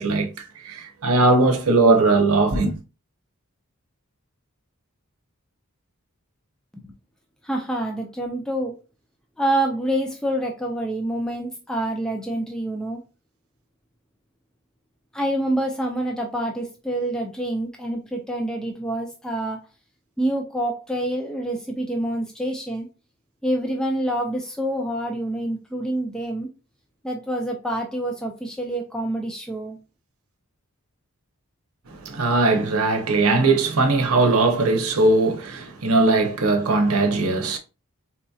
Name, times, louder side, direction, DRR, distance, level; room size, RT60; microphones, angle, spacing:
voice 1, 0.0-2.8 31.9-37.6, right 3 dB, 75° right, 0.8 m, -19 dB
voice 2, 7.4-8.8 9.4-13.0 15.1-19.6 20.2-22.9 23.4-26.5 27.0-29.8, right 1 dB, 5° left, 0.4 m, -27 dB
4.0 x 2.7 x 2.3 m
head